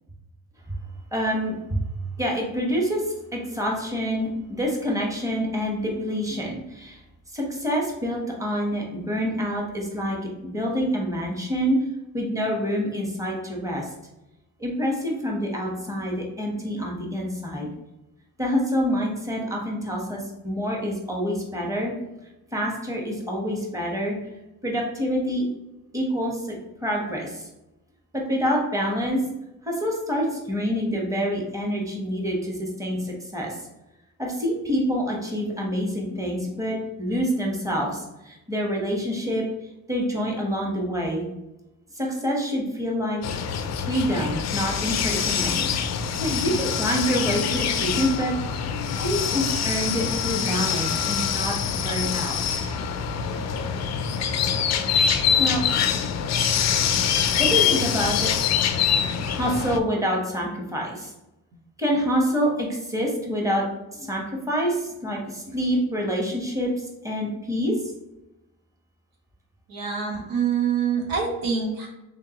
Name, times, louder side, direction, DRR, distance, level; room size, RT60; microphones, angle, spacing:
voice 1, 1.1-1.8 2.2-7.0 7.3-10.2 10.5-11.8 12.1-13.9 14.6-17.7 18.4-21.9 22.5-24.2 24.6-25.5 25.9-26.6 26.8-27.5 28.1-29.3 29.6-33.6 34.2-39.4 39.9-41.2 41.9-43.2 43.9-45.6 45.9-48.3 49.0-51.5 51.8-52.4 55.4-55.7 57.4-58.3 59.2-61.1 61.8-63.6 63.9-66.7 67.0-67.9, equal, 10° right, -1 dB, 1.1 m, -26 dB
sound 1, 43.2-59.8, left 7 dB, 50° left, 0.4 m, -24 dB
voice 2, 69.7-71.9, right 6 dB, 85° right, 0 dB, 1.2 m, -25 dB
3.7 x 3.4 x 2.9 m, 0.95 s
cardioid pair, 95°, 35 cm